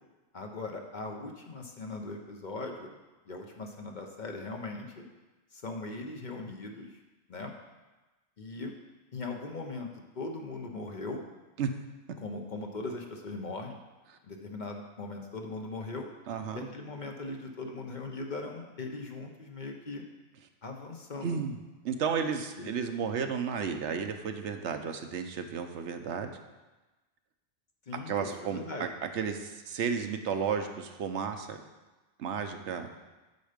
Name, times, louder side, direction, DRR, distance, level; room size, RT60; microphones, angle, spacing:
voice 1, 0.3-2.9 3.3-5.0 5.5-6.9 7.3-7.5 8.4-8.7 9.1-9.9 10.1-11.2 12.2-13.8 14.3-16.1 16.5-20.0 20.6-21.4 22.6-22.7 27.9-28.9, left 3 dB, 45° left, 2 dB, 0.9 m, -39 dB
voice 2, 16.3-16.7 21.2-21.6 21.8-26.3 27.9-31.6 32.2-32.9, right 6 dB, 75° right, 7 dB, 1.0 m, -33 dB
8.0 x 6.7 x 5.1 m, 1.1 s
omnidirectional pair, 1.2 m